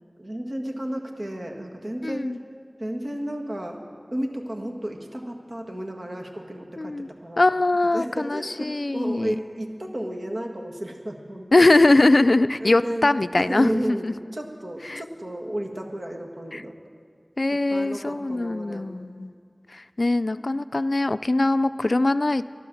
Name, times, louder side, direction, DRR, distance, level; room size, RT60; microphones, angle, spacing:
voice 1, 0.2-2.4 2.8-3.8 4.1-6.9 7.2-7.5 7.9-11.7 12.6-14.1 14.3-16.8 17.5-18.8, right 1 dB, 60° right, 1 dB, 1.6 m, -32 dB
voice 2, 2.0-2.4 6.8-7.1 7.4-9.4 11.5-14.1 14.9-15.0 16.5-16.6 17.4-19.3 19.7-22.5, left 2 dB, 65° left, 13 dB, 0.3 m, -21 dB
13.0 x 11.5 x 7.0 m, 2.2 s
wide cardioid pair, 40°, 0 cm